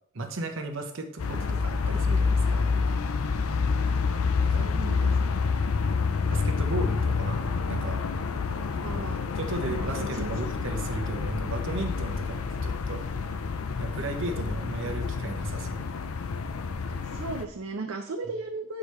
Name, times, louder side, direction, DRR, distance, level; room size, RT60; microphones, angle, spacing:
voice 1, 0.1-2.7 4.4-4.7 6.3-7.4 7.7-8.1 9.4-13.1 13.8-15.9, right 2 dB, 60° right, 5 dB, 0.9 m, -35 dB
sound 1, 1.2-17.4, left 4 dB, 80° left, 0.5 m, -28 dB
voice 2, 4.6-5.3 8.7-9.2 9.7-10.3 17.0-18.8, right 3 dB, 85° right, 3 dB, 0.6 m, -36 dB
8.2 x 4.9 x 3.1 m, 0.74 s
head